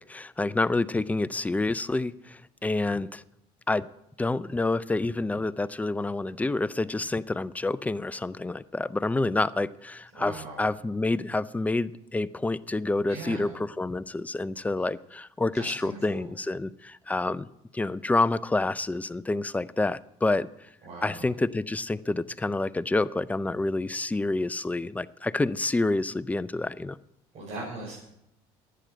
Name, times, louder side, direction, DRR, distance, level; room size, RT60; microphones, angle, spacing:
voice 1, 0.1-3.2 3.7-3.9 4.2-17.5 17.7-20.5 21.0-27.0, left 2 dB, 10° left, 17 dB, 0.4 m, -28 dB
voice 2, 10.1-10.7 13.1-13.6 15.5-16.3 20.8-21.3 27.3-28.0, right 2 dB, 55° right, -5 dB, 5.3 m, -40 dB
11.5 x 8.9 x 7.8 m, 0.80 s
supercardioid pair, 95°, 13 cm